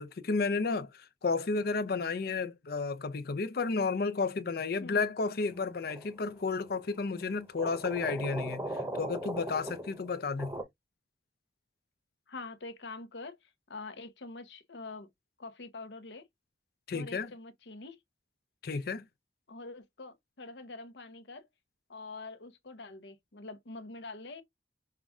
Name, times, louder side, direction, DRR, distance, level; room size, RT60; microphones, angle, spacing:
voice 1, 0.0-8.6 8.9-10.5 16.9-17.3 18.6-19.1, left 4 dB, 55° left, 0.5 m, -32 dB
voice 2, 4.8-5.1 12.3-15.1 15.4-16.3 16.9-18.0 19.5-21.5 21.9-24.4, left 3 dB, 75° left, 0.9 m, -45 dB
sound 1, 5.9-6.3 7.6-10.6, right 1 dB, 15° right, 0.8 m, -38 dB
5.7 x 2.4 x 3.5 m
head